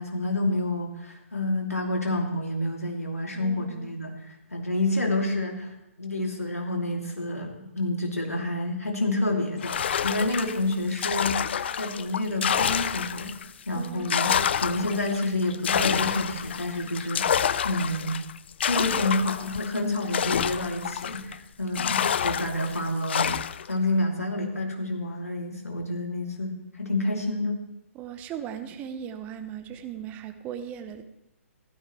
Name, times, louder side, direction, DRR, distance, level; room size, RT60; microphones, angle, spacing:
voice 1, 0.0-18.2 18.6-27.6, left 2 dB, 80° left, 1 dB, 2.7 m, -29 dB
voice 2, 3.3-4.0 13.7-14.2 27.9-31.0, right 9 dB, 20° right, 9 dB, 0.7 m, -38 dB
sound 1, 9.6-13.5 13.8-21.4 21.8-23.7, left 8 dB, 45° left, 0.4 m, -28 dB
15.5 x 12.5 x 3.2 m, 0.90 s
figure-of-eight pair, 130°, 8 cm